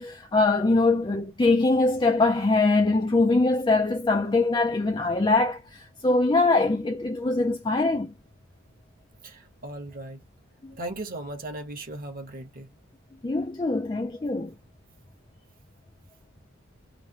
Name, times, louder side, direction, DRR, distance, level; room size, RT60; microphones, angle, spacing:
voice 1, 0.0-8.1 10.6-10.7 13.2-14.5, left 3 dB, 20° left, 0.4 m, -23 dB
voice 2, 9.2-10.2 10.8-12.7, right 1 dB, 45° right, 1.1 m, -37 dB
3.2 x 2.2 x 2.7 m
head